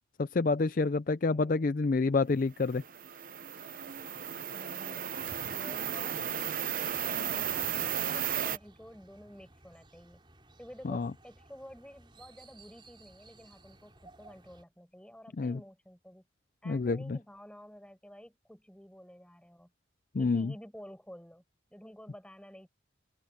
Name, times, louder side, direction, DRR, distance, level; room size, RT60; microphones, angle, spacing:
voice 1, 0.2-2.8 10.8-11.1 15.4-15.6 16.7-17.2 20.1-20.5, left 3 dB, 45° left, 0.4 m, -28 dB
voice 2, 1.3-1.7 4.5-5.1 5.5-6.4 7.0-10.2 10.6-16.2 16.6-19.7 20.2-21.4 21.7-22.7, equal, 5° left, 6.4 m, -51 dB
sound 1, 2.6-8.6, right 9 dB, 45° right, 0.8 m, -34 dB
sound 2, 6.9-14.6, right 2 dB, 25° right, 4.8 m, -58 dB
open air
head